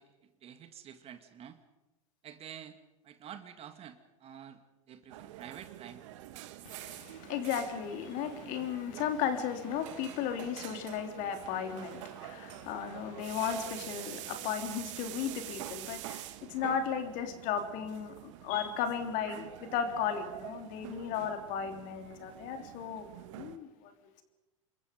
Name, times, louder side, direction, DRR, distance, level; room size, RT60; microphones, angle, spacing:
voice 1, 0.0-1.6 2.2-4.6 4.9-6.0, right 9 dB, 35° right, 2.2 m, -49 dB
sound 1, 5.1-23.6, right 14 dB, 65° right, 1.4 m, -46 dB
voice 2, 6.6-23.1 23.3-23.9, left 8 dB, 50° left, 3.3 m, -35 dB
27.5 x 22.5 x 5.3 m
hypercardioid pair, 90°, 17 cm